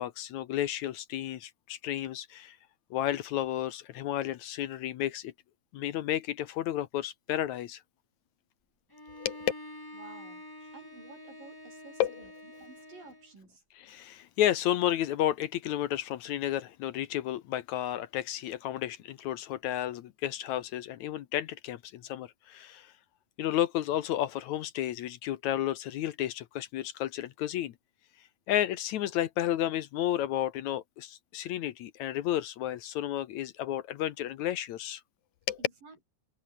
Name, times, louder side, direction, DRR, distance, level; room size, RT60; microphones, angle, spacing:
voice 1, 0.0-2.6 2.9-5.3 5.7-7.8 9.2-9.5 12.0-12.2 13.7-22.9 23.4-27.7 28.5-35.0 35.5-35.6, left 12 dB, 70° left, 2.1 m, -32 dB
Bowed string instrument, 8.9-13.3, left 1 dB, 5° left, 2.3 m, -47 dB
voice 2, 9.9-10.4 10.7-12.3 12.6-13.6 35.6-36.1, right 4 dB, 85° right, 9.5 m, -52 dB
omnidirectional pair, 3.8 m